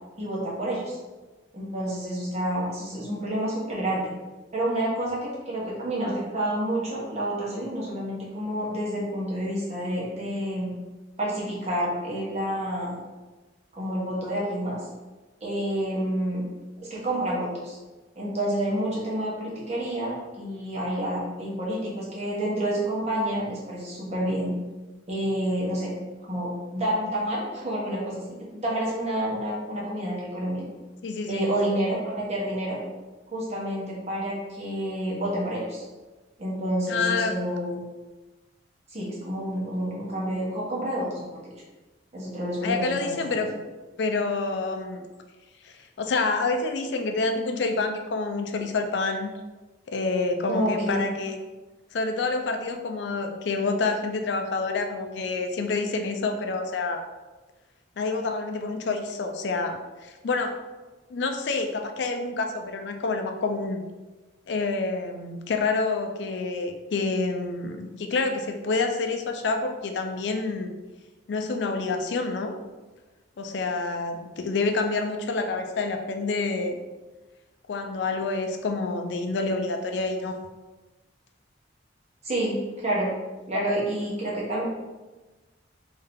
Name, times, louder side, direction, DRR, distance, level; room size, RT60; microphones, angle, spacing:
voice 1, 0.2-1.0 1.5-4.1 4.5-10.7 11.2-13.0 13.7-14.8 15.4-16.4 16.8-17.8 18.1-24.5 25.1-25.9 26.2-30.6 31.3-32.8 33.3-35.8 36.4-37.8 38.9-41.4 42.1-43.5 50.5-51.0 82.2-83.1 83.5-84.6, right 1 dB, 35° right, -6 dB, 1.2 m, -29 dB
voice 2, 31.0-31.4 36.9-37.3 42.6-43.5 44.0-45.1 45.6-49.3 49.9-51.3 51.9-57.0 58.0-60.6 61.1-63.8 64.5-70.7 71.3-72.6 73.4-76.8 77.7-80.4 83.5-83.8, left 3 dB, 65° left, 5 dB, 0.4 m, -28 dB
3.6 x 2.7 x 3.5 m, 1.2 s
head